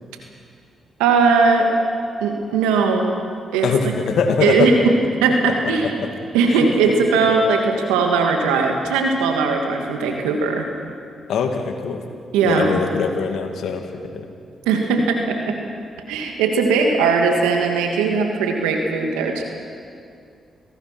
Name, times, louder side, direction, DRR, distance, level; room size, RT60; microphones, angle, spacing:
voice 1, 1.0-1.7 2.2-3.1 3.5-3.9 4.4-4.9 5.2-5.9 6.3-10.7 12.3-12.7 14.7-15.6 16.1-19.4, right 4 dB, 90° right, 3 dB, 2.5 m, -19 dB
voice 2, 3.6-4.7 5.4-6.1 11.3-12.0 12.4-13.9 14.1-14.3, left 6 dB, 75° left, 5 dB, 2.3 m, -22 dB
27.0 x 17.5 x 6.2 m, 2.3 s
supercardioid pair, 50°, 0 cm